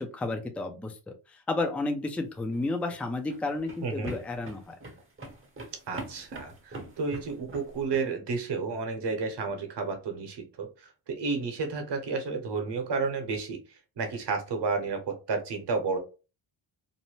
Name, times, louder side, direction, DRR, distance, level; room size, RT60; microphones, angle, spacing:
voice 1, 0.0-4.8, left 2 dB, 5° left, 4 dB, 0.4 m, -32 dB
sound 1, 2.4-8.0, right 2 dB, 25° right, 0.8 m, -43 dB
voice 2, 3.8-4.1 5.9-16.0, right 4 dB, 55° right, 4 dB, 1.0 m, -31 dB
2.7 x 2.1 x 3.0 m, 0.32 s
cardioid pair, 80°, 49 cm